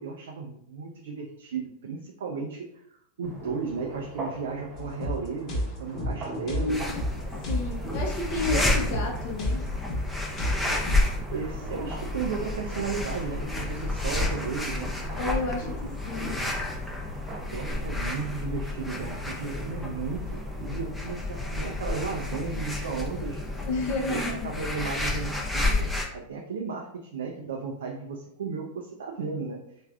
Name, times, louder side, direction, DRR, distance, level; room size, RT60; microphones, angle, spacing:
voice 1, 0.0-2.8 3.2-6.8 8.4-8.6 10.7-10.9 11.3-14.9 17.5-23.4 24.1-29.6, right 5 dB, 75° right, 1 dB, 0.4 m, -34 dB
sound 1, 3.2-20.9, right 2 dB, 35° right, 0.8 m, -42 dB
sound 2, 4.8-11.1, equal, 40° left, 1.0 m, -32 dB
voice 2, 6.5-7.1 7.5-9.6 15.2-15.7 16.1-16.4 23.7-24.5, left 3 dB, 55° left, 0 dB, 0.5 m, -31 dB
sound 3, 6.7-26.1, left 2 dB, 5° left, 0.5 m, -31 dB
3.3 x 2.4 x 2.3 m, 0.72 s
hypercardioid pair, 100°, 0 cm